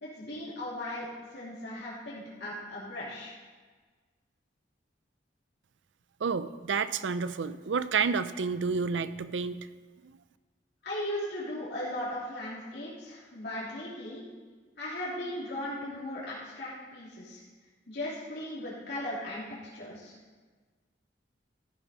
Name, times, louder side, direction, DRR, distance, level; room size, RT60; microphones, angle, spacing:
voice 1, 0.0-3.3 10.8-14.2 14.8-17.4 17.9-19.4 19.7-20.1, left 1 dB, 60° left, -8 dB, 3.0 m, -37 dB
voice 2, 6.2-9.7 10.0-10.2, right 5 dB, 85° right, 14 dB, 0.5 m, -30 dB
13.5 x 7.1 x 5.5 m, 1.4 s
head